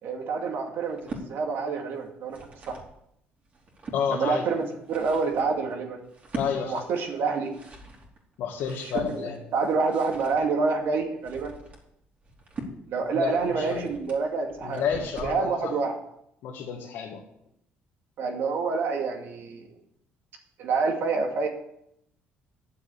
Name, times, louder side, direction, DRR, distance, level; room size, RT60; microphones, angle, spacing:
voice 1, 0.0-2.4 2.7-2.8 4.1-6.0 6.6-7.5 9.1-11.5 12.9-14.8 15.2-16.0 18.2-19.7 20.6-21.5, right 4 dB, 65° right, 3 dB, 2.3 m, -27 dB
sound 1, 0.8-1.3 2.1-2.9 3.4-4.0 4.6-15.5, right 2 dB, 35° right, 3.2 m, -42 dB
voice 2, 3.9-4.4 6.3-6.8 8.4-9.4 13.1-13.9 14.6-15.7 16.4-17.2, left 7 dB, 75° left, -1 dB, 1.7 m, -30 dB
9.6 x 7.3 x 8.6 m, 0.78 s
cardioid pair, 110°, 4 cm